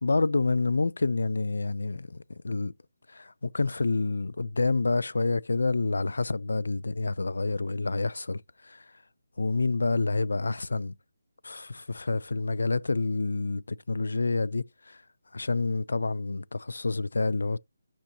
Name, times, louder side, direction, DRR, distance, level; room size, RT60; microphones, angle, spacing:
voice 1, 0.0-2.7 3.1-8.9 9.4-11.0 11.4-15.0 15.3-17.6, left 3 dB, 85° left, 0.3 m, -28 dB
10.0 x 5.7 x 2.7 m
hypercardioid pair, 175°, 0 cm